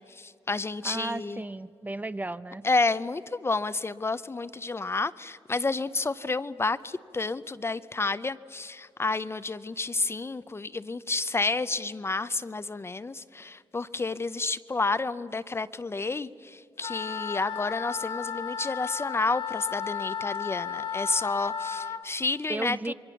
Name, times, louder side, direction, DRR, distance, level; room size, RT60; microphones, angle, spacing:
voice 1, 0.0-1.4 2.6-22.8, left 3 dB, 30° left, 14 dB, 0.6 m, -30 dB
voice 2, 0.8-2.6 22.5-22.9, right 2 dB, 20° right, 14 dB, 0.6 m, -34 dB
Wind instrument woodwind instrument, 16.8-22.0, left 7 dB, 70° left, 1.7 m, -34 dB
27.5 x 22.5 x 7.0 m, 2.6 s
cardioid pair, 95°, 9 cm